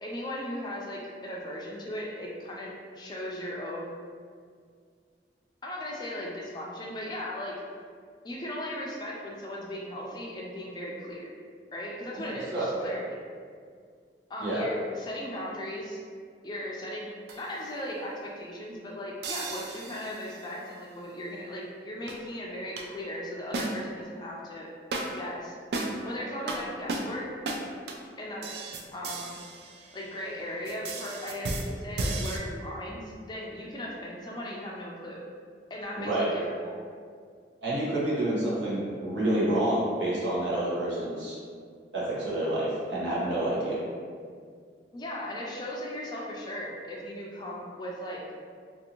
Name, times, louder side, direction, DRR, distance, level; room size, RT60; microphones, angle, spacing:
voice 1, 0.0-4.0 5.6-7.5 8.2-11.3 11.7-13.2 14.3-16.0 16.4-17.1 17.4-24.7 25.1-25.6 26.0-27.3 28.2-28.5 28.9-29.4 29.9-35.2 35.7-36.7 44.9-48.2, left 1 dB, 25° left, -3 dB, 0.3 m, -37 dB
voice 2, 12.5-12.9 14.4-14.6 36.0-36.3 37.6-41.4 41.9-43.8, right 1 dB, 85° right, -8 dB, 1.0 m, -28 dB
sound 1, 17.3-17.6 19.2-20.5 22.1-22.2 22.8-22.9 23.5-24.1 24.9-25.3 25.7-26.1 26.5-26.6 26.9-27.1 27.5-27.6 27.9-28.0 28.4-30.3 30.6-32.4, right 2 dB, 65° right, 0.3 m, -34 dB
2.6 x 2.5 x 2.8 m, 2.1 s
head